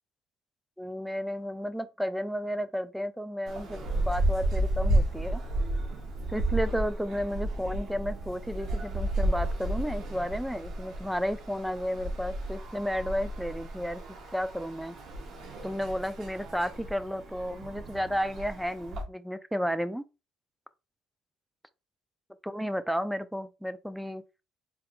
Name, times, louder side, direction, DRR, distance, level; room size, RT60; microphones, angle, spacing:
voice 1, 0.8-5.4 6.3-14.0 14.3-15.0 15.6-20.0 22.4-24.2, equal, ahead, 0.5 m, -32 dB
sound 1, 3.5-19.0, right 1 dB, 60° right, 1.6 m, -32 dB
4.4 x 3.5 x 2.3 m
hypercardioid pair, 65°, 0 cm